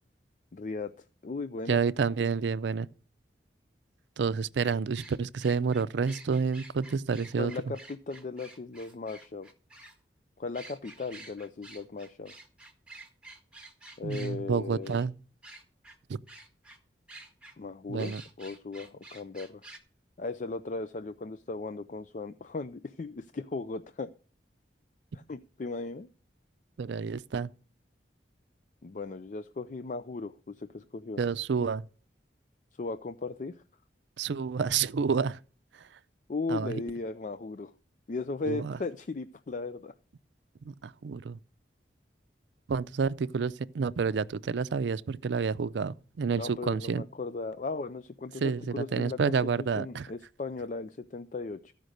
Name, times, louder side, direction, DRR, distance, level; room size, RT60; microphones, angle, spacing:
voice 1, 0.5-1.9 7.4-9.5 10.4-12.3 14.0-15.0 17.6-19.6 20.2-24.1 25.1-26.1 28.8-31.2 32.8-33.6 36.3-37.7 38.1-39.9 46.3-51.7, left 3 dB, 45° left, 0.4 m, -37 dB
voice 2, 1.7-2.9 4.2-7.5 14.0-15.1 16.1-16.2 17.9-18.2 26.8-27.5 31.2-31.9 34.2-35.4 36.5-36.7 38.5-38.8 40.7-41.4 42.7-47.0 48.4-50.1, right 5 dB, 85° right, 0.4 m, -29 dB
single bird, 4.6-9.9 10.5-14.3 14.8-15.1 15.4-15.9 16.3-16.8 17.1-17.5 18.0-19.8, right 2 dB, 5° right, 1.7 m, -49 dB
14.0 x 5.1 x 6.5 m
head